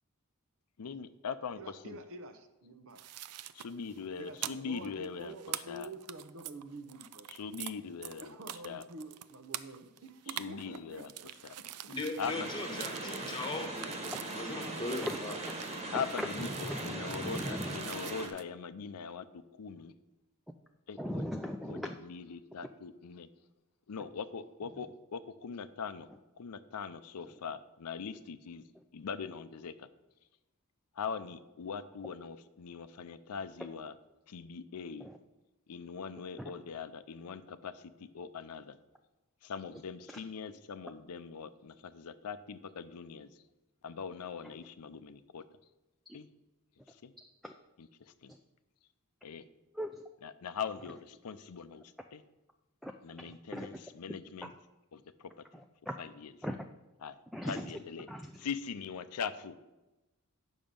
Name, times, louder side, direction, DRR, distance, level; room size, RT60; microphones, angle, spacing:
voice 1, 0.8-2.0 3.5-5.3 5.7-5.9 7.3-8.3 8.6-8.8 10.4-11.1 12.2-12.5 15.9-19.9 20.9-21.3 21.7-23.3 23.9-26.1 26.4-28.6 28.9-29.9 31.0-33.9 34.3-35.1 35.7-38.8 39.4-43.3 43.8-45.4 46.1-46.3 47.0-47.1 47.8-48.3 49.2-49.4 50.2-51.8 52.1-52.2 53.0-54.5 54.9-55.3 56.0-56.3 57.0-57.1 57.4-58.1 58.4-59.6, left 6 dB, 85° left, 12 dB, 0.5 m, -41 dB
voice 2, 1.6-3.0 4.2-7.3 8.2-11.3, right 2 dB, 65° right, 8 dB, 0.9 m, -48 dB
sound 1, 2.9-7.7 8.0-18.4, right 12 dB, 85° right, 0.4 m, -45 dB
voice 3, 11.9-13.9 14.3-15.4, left 2 dB, 20° left, 4 dB, 1.2 m, -38 dB
sound 2, 12.2-18.3, right 2 dB, 30° right, 1.4 m, -40 dB
voice 4, 16.2-17.8 21.0-22.0 24.7-24.8 35.0-35.2 36.4-36.5 40.1-40.2 44.4-44.5 46.1-46.2 47.4-47.5 49.7-50.0 52.8-52.9 53.2-53.8 55.5-55.9 56.4-56.6 57.3-57.8 58.1-58.5, equal, ahead, 3 dB, 0.4 m, -39 dB
8.8 x 6.3 x 5.3 m, 1.0 s
head